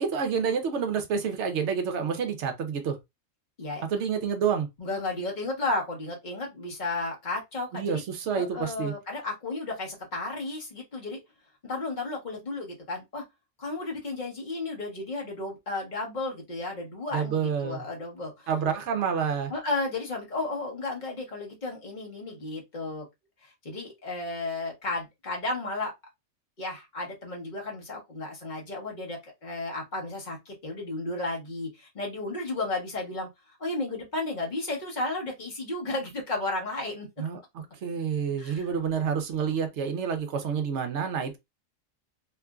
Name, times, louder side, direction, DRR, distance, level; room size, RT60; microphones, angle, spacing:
voice 1, 0.0-3.0 3.9-4.7 7.7-8.9 17.1-17.8 18.5-19.5 37.2-37.4 37.8-41.4, right 6 dB, 65° right, 0.9 m, -28 dB
voice 2, 4.8-8.0 8.3-11.2 11.6-13.2 13.6-18.5 19.5-23.1 23.4-25.9 26.6-33.3 33.6-37.1 38.4-38.7, left 2 dB, 35° left, 1.1 m, -33 dB
3.0 x 2.4 x 2.2 m
omnidirectional pair, 1.4 m